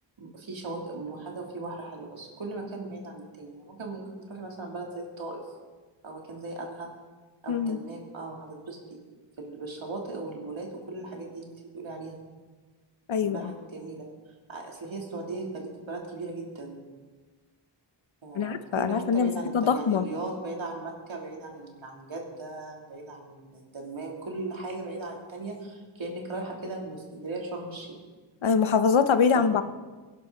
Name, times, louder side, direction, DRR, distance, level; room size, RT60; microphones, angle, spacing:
voice 1, 0.2-5.5 6.0-6.9 7.4-9.0 9.4-12.2 13.2-14.1 14.5-16.9 18.2-27.9 29.3-29.4, right 2 dB, 85° right, -1 dB, 3.0 m, -38 dB
voice 2, 7.5-7.8 13.1-13.5 18.3-20.0 28.4-29.6, left 6 dB, 85° left, 10 dB, 0.9 m, -24 dB
23.0 x 11.0 x 3.9 m, 1.3 s
wide cardioid pair, 115°, 46 cm